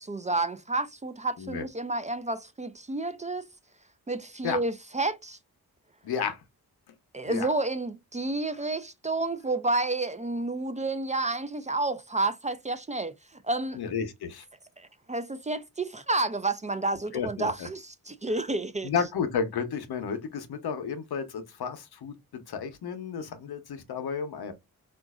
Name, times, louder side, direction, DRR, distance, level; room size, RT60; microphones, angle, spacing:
voice 1, 0.0-3.5 4.1-5.4 7.1-13.8 14.8-18.9, right 2 dB, 20° right, 0.3 m, -30 dB
voice 2, 6.0-6.4 7.3-7.5 13.7-14.4 17.1-17.7 18.8-24.5, left 6 dB, 85° left, 0.8 m, -32 dB
3.9 x 2.4 x 2.3 m
cardioid pair, 70°, 37 cm